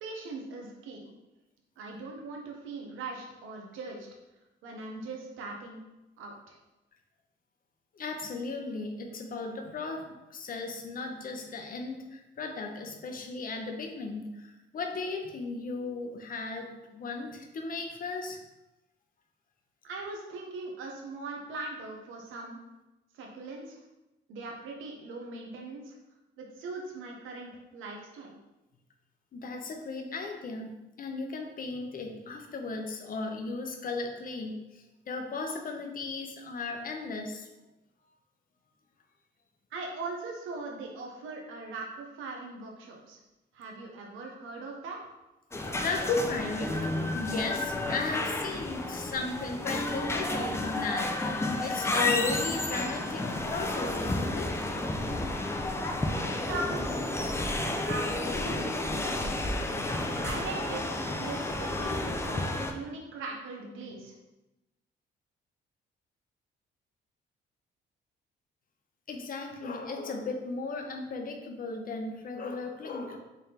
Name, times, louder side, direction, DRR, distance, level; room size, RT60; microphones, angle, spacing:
voice 1, 0.0-1.0 1.8-4.1 4.6-5.8 6.2-6.6 19.8-22.6 23.1-23.8 24.3-26.0 26.4-28.4 39.7-43.2 43.5-45.0 56.2-59.4 60.2-62.4 62.7-64.1, right 3 dB, 85° right, 0 dB, 0.7 m, -40 dB
voice 2, 7.9-18.4 29.3-37.5 45.7-54.5 59.7-60.2 69.1-73.2, left 3 dB, 45° left, 3 dB, 0.7 m, -36 dB
sound 1, 45.5-62.7, left 2 dB, 15° left, 0.4 m, -31 dB
3.7 x 3.4 x 2.8 m, 0.99 s
cardioid pair, 90°, 20 cm